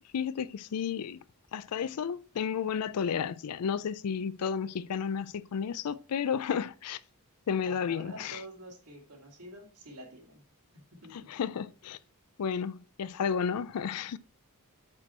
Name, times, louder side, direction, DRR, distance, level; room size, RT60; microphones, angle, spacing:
voice 1, 0.1-1.2 1.5-7.0 7.5-8.4 11.1-12.0 12.4-14.2, left 7 dB, 90° left, 0.4 m, -32 dB
voice 2, 7.6-10.5 10.9-11.3, right 1 dB, 85° right, 2.4 m, -48 dB
6.2 x 5.9 x 4.4 m
head